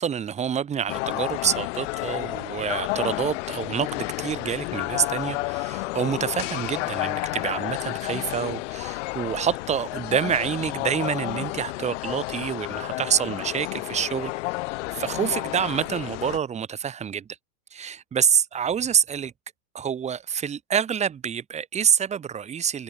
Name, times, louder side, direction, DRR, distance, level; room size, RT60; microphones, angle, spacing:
voice 1, 0.0-14.3 14.9-17.3 17.7-19.3 19.7-22.8, right 8 dB, 15° right, 2.1 m, -27 dB
sound 1, 0.9-16.4, left 23 dB, 50° left, 1.6 m, -31 dB
supercardioid pair, 165°, 46 cm